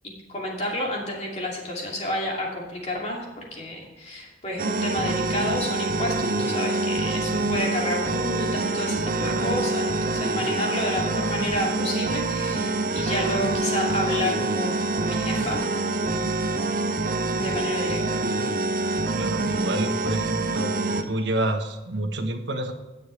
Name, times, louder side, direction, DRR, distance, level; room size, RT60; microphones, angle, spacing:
voice 1, 0.3-15.7 15.9-16.2 17.4-18.2, left 1 dB, 35° left, -2 dB, 2.6 m, -30 dB
sound 1, 4.6-21.0, right 2 dB, 45° right, 0.8 m, -26 dB
voice 2, 9.2-9.5 19.2-20.7 21.1-22.7, right 1 dB, 65° right, 5 dB, 1.2 m, -28 dB
18.0 x 6.7 x 3.3 m, 1.2 s
head